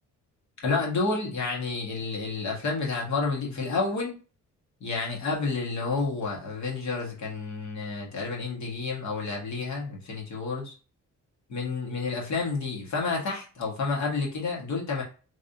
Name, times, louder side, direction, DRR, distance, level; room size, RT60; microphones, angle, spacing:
voice 1, 0.6-4.2 4.8-10.7 11.5-15.0, left 4 dB, 65° left, -2 dB, 1.7 m, -30 dB
3.5 x 3.1 x 2.7 m, 0.35 s
cardioid pair, 90°, 30 cm